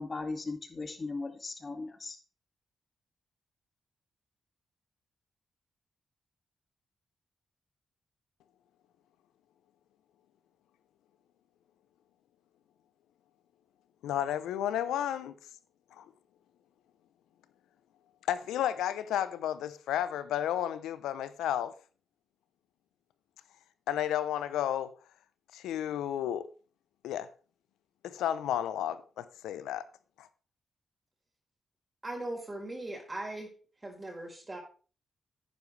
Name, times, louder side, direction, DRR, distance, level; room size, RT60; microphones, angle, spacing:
voice 1, 0.0-2.2, left 3 dB, 40° left, 2.2 m, -37 dB
voice 2, 14.0-15.3 15.9-16.1 18.3-21.8 23.9-24.9 25.5-26.5 27.0-27.3 28.0-29.8 30.2-30.3, left 11 dB, 85° left, 0.7 m, -32 dB
voice 3, 32.0-33.5 33.8-34.6, right 1 dB, 30° right, 4.2 m, -39 dB
10.5 x 9.5 x 3.3 m
supercardioid pair, 45°, 0 cm